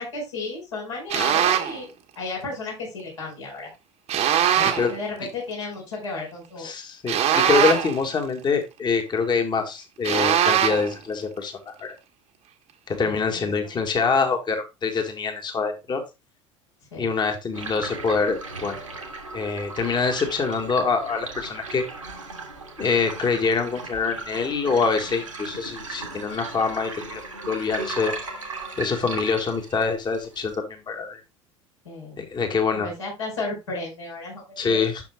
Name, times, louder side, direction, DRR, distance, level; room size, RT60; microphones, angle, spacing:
voice 1, 0.0-1.9 2.2-3.7 4.5-6.7 13.0-13.7 16.9-17.1 31.8-32.3 32.7-34.8, left 3 dB, 75° left, -4 dB, 4.8 m, -33 dB
sound 1, 1.1-1.8 4.1-4.9 7.1-8.0 10.0-10.9, right 10 dB, 40° right, 1.2 m, -21 dB
voice 2, 6.6-11.9 12.9-16.0 17.0-18.8 19.3-21.8 22.8-27.2 27.5-28.1 28.8-31.2 32.2-32.9 34.6-35.0, left 5 dB, 25° left, 5 dB, 1.8 m, -25 dB
sound 2, 17.5-30.5, right 3 dB, 85° right, 1.9 m, -37 dB
10.5 x 6.6 x 2.3 m, 0.25 s
figure-of-eight pair, 70°, 16 cm